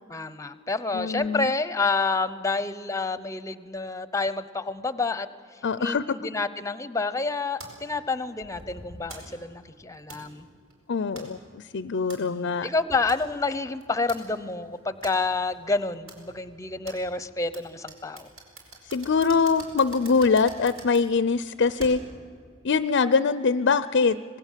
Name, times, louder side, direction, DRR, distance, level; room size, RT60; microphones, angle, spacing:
voice 1, 0.1-10.5 12.2-18.3, left 3 dB, 15° left, 14 dB, 0.8 m, -29 dB
voice 2, 0.9-1.5 5.6-6.1 10.9-12.7 18.9-22.0 22.6-24.2, left 5 dB, 55° left, 14 dB, 0.5 m, -23 dB
sound 1, 7.6-22.3, right 2 dB, 70° right, 4.8 m, -47 dB
26.0 x 19.0 x 7.4 m, 2.2 s
head